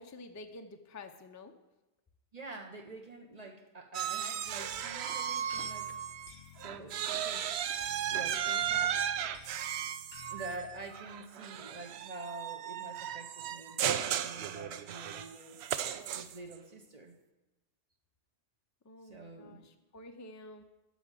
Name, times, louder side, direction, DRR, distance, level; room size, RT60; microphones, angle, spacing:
voice 1, 0.0-1.5 18.8-20.6, left 2 dB, 20° left, 6 dB, 0.5 m, -49 dB
voice 2, 2.3-6.3 6.6-7.5 8.0-9.0 10.3-15.6 16.1-17.2 19.0-19.6, right 2 dB, 40° right, 4 dB, 0.9 m, -47 dB
sound 1, 3.9-6.3 6.6-16.5, right 9 dB, 75° right, 0.8 m, -35 dB
sound 2, 4.4-10.9, left 9 dB, 70° left, 1.0 m, -55 dB
8.3 x 6.3 x 7.4 m, 1.0 s
omnidirectional pair, 1.1 m